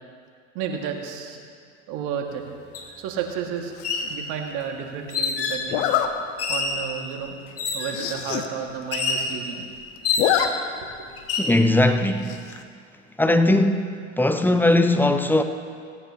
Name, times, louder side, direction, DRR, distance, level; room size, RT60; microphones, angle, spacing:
voice 1, 0.5-1.4 1.9-2.4 3.0-3.8 4.1-5.8 6.5-7.3 7.7-9.6 10.8-11.1 14.3-14.4, right 7 dB, 50° right, 2 dB, 2.1 m, -32 dB
sound 1, 2.7-2.9 3.7-4.1 5.1-5.7 6.4-6.8 7.6-8.0 8.9-9.3 10.0-10.6 11.2-11.5, left 4 dB, 40° left, 2.3 m, -26 dB
Zipper (clothing), 3.8-4.2 5.7-6.1 6.6-6.8 7.1-7.2 7.5-7.6 7.9-8.5 8.8-8.9 9.1-9.7 10.0-10.5 10.8-10.9 12.2-12.6, left 11 dB, 60° left, 1.1 m, -25 dB
voice 2, 11.4-12.4 13.2-13.9 14.2-15.4, left 1 dB, 5° left, 7 dB, 0.8 m, -19 dB
17.0 x 16.5 x 2.9 m, 2.2 s
hypercardioid pair, 85°, 38 cm